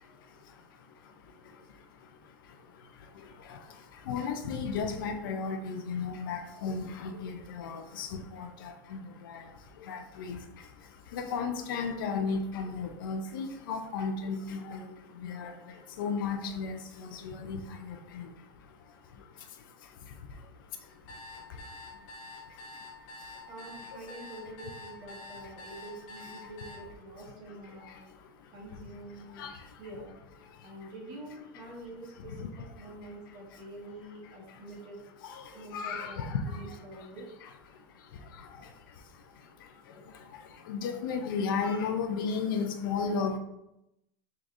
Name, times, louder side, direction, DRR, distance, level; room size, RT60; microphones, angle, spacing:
voice 1, 0.0-23.5 23.9-24.1 26.4-26.5 27.5-28.5 29.3-29.8 30.4-30.7 32.4-32.5 32.8-33.6 34.5-34.6 35.2-37.1 37.4-43.4, left 5 dB, 75° left, 6 dB, 0.5 m, -37 dB
sound 1, 20.9-26.8, left 2 dB, 45° left, 1.2 m, -46 dB
voice 2, 23.4-27.9 28.5-29.4 29.8-30.1 30.6-32.4 32.8-35.0 35.5-37.3, right 1 dB, 45° right, -2 dB, 1.3 m, -46 dB
4.7 x 3.8 x 2.6 m, 0.86 s
supercardioid pair, 150°, 11 cm